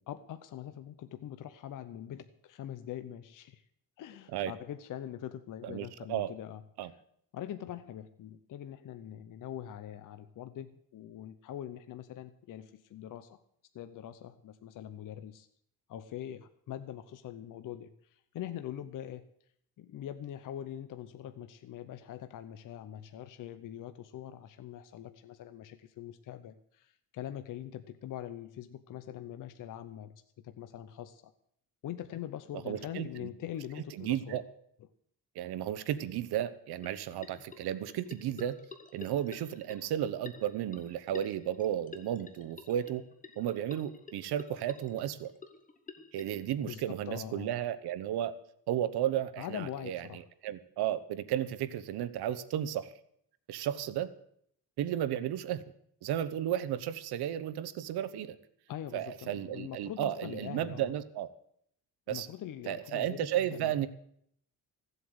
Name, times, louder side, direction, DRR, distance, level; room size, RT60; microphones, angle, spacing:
voice 1, 0.1-3.6 4.0-6.6 7.3-13.4 13.7-15.5 15.9-19.2 19.8-30.1 30.4-31.3 31.8-34.4 46.6-47.5 49.4-50.2 58.7-60.9 62.1-63.9, left 11 dB, 55° left, 10 dB, 0.7 m, -43 dB
voice 2, 5.6-6.3 6.8-6.9 32.6-33.3 33.9-34.4 35.3-38.5 38.9-43.0 43.4-45.3 46.1-48.3 48.7-52.9 53.5-54.1 54.8-55.6 56.0-58.4 58.9-61.3 62.1-62.3 62.7-63.9, right 11 dB, 80° right, 13 dB, 1.0 m, -33 dB
sound 1, 36.8-46.2, left 4 dB, 20° left, 1.2 m, -51 dB
15.5 x 8.0 x 7.9 m, 0.68 s
cardioid pair, 155°, 38 cm